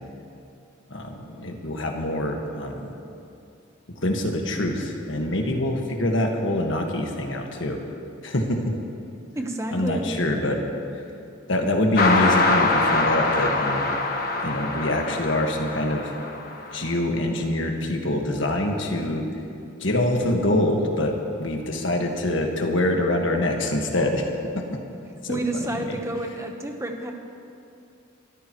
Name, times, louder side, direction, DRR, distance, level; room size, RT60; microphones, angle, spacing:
voice 1, 0.9-2.9 4.0-7.8 8.2-8.6 9.7-10.6 11.5-13.9 14.4-16.1 16.7-19.2 19.8-24.3 24.5-24.8 25.2-25.4, left 1 dB, 65° left, 2 dB, 1.6 m, -25 dB
voice 2, 9.3-10.1 25.3-27.1, right 1 dB, 15° right, 3 dB, 1.1 m, -29 dB
sound 1, 11.9-16.8, left 3 dB, 45° left, 1.4 m, -24 dB
24.5 x 13.5 x 3.1 m, 2.6 s
head